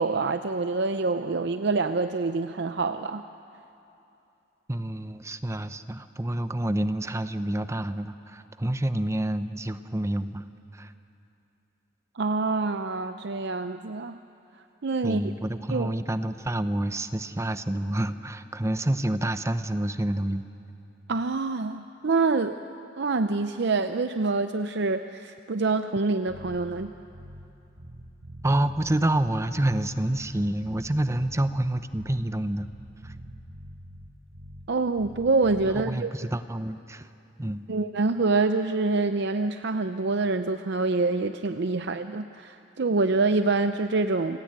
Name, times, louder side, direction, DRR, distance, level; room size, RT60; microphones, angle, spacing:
voice 1, 0.0-3.2 12.2-14.2 14.8-15.2 15.7-15.9 21.1-22.6 23.0-26.9 34.7-36.1 37.7-44.4, right 3 dB, 65° right, 9 dB, 0.6 m, -26 dB
voice 2, 4.7-10.5 10.7-10.9 15.0-20.4 28.4-32.7 33.0-33.1 35.7-37.1 37.4-37.7, right 1 dB, 15° right, 11 dB, 0.7 m, -28 dB
Bass guitar, 26.3-27.5 27.8-29.9 30.2-32.3 32.6-34.7 35.0-35.8, equal, 85° right, 5.8 m, -45 dB
29.0 x 17.0 x 8.8 m, 2.8 s
head